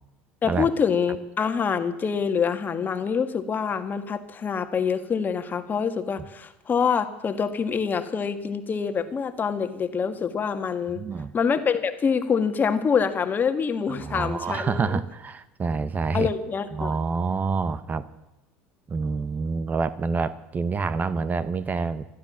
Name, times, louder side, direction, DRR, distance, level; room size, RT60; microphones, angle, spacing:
voice 1, 0.4-11.0 11.3-14.9 16.1-16.9, left 6 dB, 30° left, 10 dB, 1.7 m, -25 dB
voice 2, 11.0-11.3 13.9-16.3 16.7-18.1 18.9-22.0, right 4 dB, 30° right, 15 dB, 0.9 m, -27 dB
15.5 x 12.5 x 7.3 m, 0.94 s
supercardioid pair, 90°, 6 cm